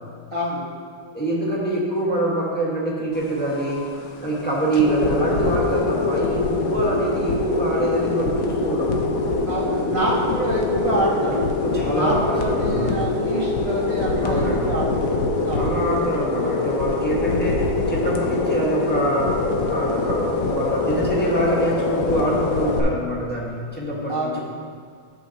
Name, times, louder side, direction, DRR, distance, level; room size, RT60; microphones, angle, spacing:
voice 1, 0.3-0.7 9.5-11.4 11.9-15.7 24.1-24.4, right 1 dB, 35° left, -7 dB, 0.5 m, -27 dB
voice 2, 1.1-3.9 4.2-8.9 11.0-13.1 14.2-14.7 15.5-19.4 19.7-24.5, right 1 dB, 5° left, -7 dB, 1.1 m, -25 dB
sound 1, 3.1-22.8, left 3 dB, 70° left, 0.8 m, -24 dB
11.0 x 6.7 x 2.9 m, 2.1 s
omnidirectional pair, 2.3 m